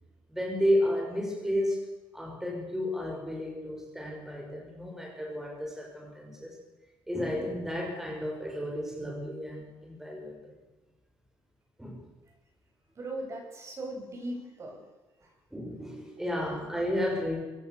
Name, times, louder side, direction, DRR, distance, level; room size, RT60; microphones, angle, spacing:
voice 1, 0.3-1.9 2.1-6.6 7.1-10.5 11.8-12.0 15.5-17.4, equal, 5° right, -1 dB, 6.2 m, -32 dB
voice 2, 13.0-14.8 15.2-15.3 16.4-16.5, right 1 dB, 35° right, 1 dB, 7.9 m, -39 dB
24.0 x 22.5 x 6.9 m, 1.2 s
cardioid pair, 145°, 9 cm